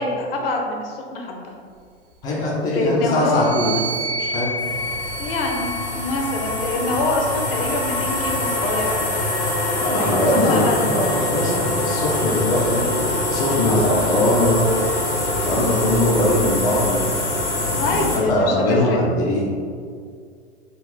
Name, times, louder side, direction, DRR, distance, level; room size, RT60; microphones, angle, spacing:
voice 1, 0.0-1.5 2.7-3.8 5.2-5.7 5.9-8.9 10.0-11.1 17.8-19.0, left 2 dB, 55° left, 1 dB, 0.7 m, -25 dB
voice 2, 2.2-3.8 4.2-4.5 9.8-12.8 13.3-14.6 15.4-17.1 17.6-19.5, left 1 dB, 15° left, -5 dB, 0.3 m, -21 dB
sound 1, 3.3-6.9 7.7-9.3, right 1 dB, 35° right, 0.6 m, -31 dB
sound 2, 4.6-18.2, left 1 dB, 80° left, 1.0 m, -24 dB
3.7 x 2.4 x 3.2 m, 2.1 s
figure-of-eight pair, 100°, 34 cm